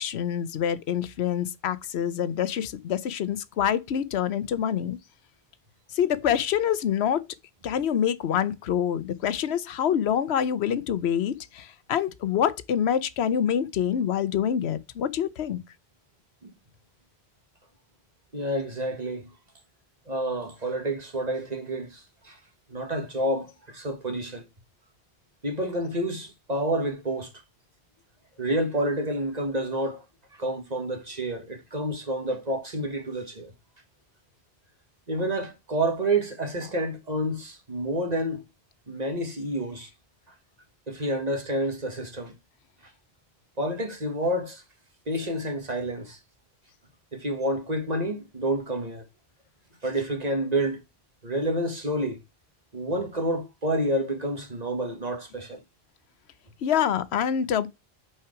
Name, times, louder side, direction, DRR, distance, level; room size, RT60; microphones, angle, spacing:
voice 1, 0.0-5.0 5.9-7.2 7.6-15.6 56.6-57.7, left 9 dB, 85° left, 1.0 m, -26 dB
voice 2, 18.3-19.3 20.1-22.4 22.7-24.4 25.4-27.3 28.4-30.0 30.4-33.5 35.1-38.4 38.9-39.9 40.9-42.3 43.6-44.6 45.1-46.2 47.1-49.0 49.8-50.8 51.2-52.2 52.7-55.6, right 1 dB, 40° right, 1.6 m, -29 dB
5.8 x 4.6 x 4.7 m
omnidirectional pair, 1.1 m